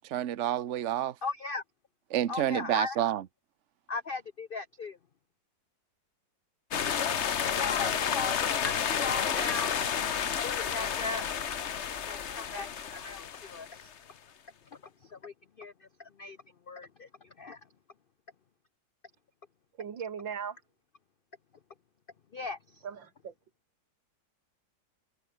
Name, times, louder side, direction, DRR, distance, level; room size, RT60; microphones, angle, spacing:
voice 1, 0.0-1.2 2.1-3.2, right 11 dB, 50° right, 1.0 m, -29 dB
voice 2, 1.2-1.6 2.3-3.0 3.9-5.0 7.8-9.9 10.4-11.2 12.0-13.9 14.7-16.4 16.7-17.6 22.3-22.8, left 4 dB, 75° left, 0.5 m, -38 dB
sound 1, 6.7-13.9, left 7 dB, 45° left, 1.1 m, -31 dB
voice 3, 19.8-20.6 22.8-23.3, right 7 dB, 85° right, 2.5 m, -38 dB
omnidirectional pair, 2.0 m